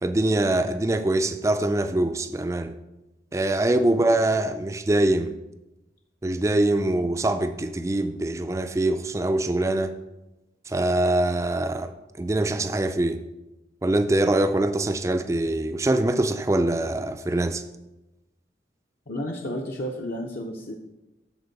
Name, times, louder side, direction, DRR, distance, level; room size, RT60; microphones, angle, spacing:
voice 1, 0.0-2.7 3.3-5.3 6.2-9.9 10.7-13.2 13.8-17.6, right 1 dB, 15° right, 9 dB, 0.3 m, -23 dB
voice 2, 19.1-20.7, equal, 55° left, 0 dB, 0.7 m, -32 dB
13.0 x 4.5 x 4.0 m, 1.0 s
head